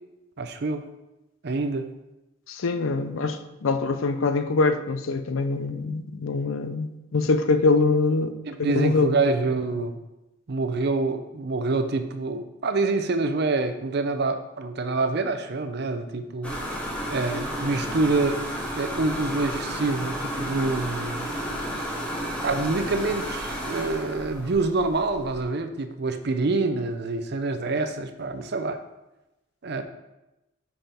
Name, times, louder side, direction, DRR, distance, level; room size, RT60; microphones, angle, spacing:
voice 1, 0.4-0.8 1.4-1.9 8.5-10.0 10.5-16.7 17.1-21.3 22.4-28.8 29.6-29.8, right 3 dB, 50° right, 9 dB, 0.5 m, -26 dB
voice 2, 2.5-8.3 8.6-9.1, left 3 dB, 70° left, 9 dB, 0.5 m, -24 dB
sound 1, 16.4-25.4, equal, 5° left, 0.9 m, -32 dB
5.6 x 5.5 x 4.3 m, 0.96 s
head